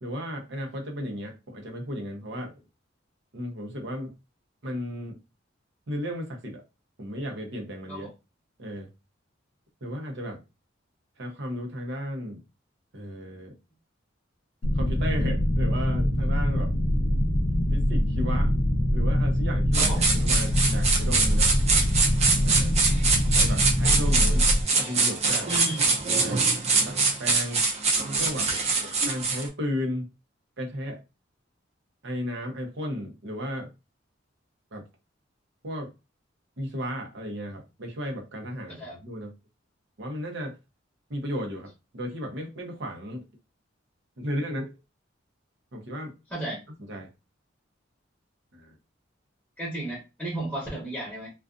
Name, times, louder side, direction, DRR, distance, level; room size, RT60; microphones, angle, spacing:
voice 1, 0.0-2.6 3.3-4.1 4.6-5.2 5.9-6.6 7.0-8.1 8.6-8.9 9.8-10.4 11.2-12.4 12.9-13.6 14.7-16.7 17.7-18.5 18.9-21.5 22.4-22.8 23.3-25.5 26.2-27.6 28.0-28.5 29.0-30.1 30.6-31.0 32.0-33.7 34.7-34.8 35.6-35.9 36.6-39.3 40.0-40.6 41.1-43.2 44.2-44.8 45.7-46.1 46.9-47.1 48.5-48.7, equal, 65° right, 0.8 m, -34 dB
sound 1, 14.6-24.6, equal, 55° left, 0.6 m, -24 dB
sound 2, 19.7-29.5, right 4 dB, 35° right, 0.5 m, -24 dB
voice 2, 25.5-25.9 38.7-39.0 46.3-46.6 49.6-51.3, right 1 dB, 5° left, 0.9 m, -33 dB
2.4 x 2.4 x 2.4 m
head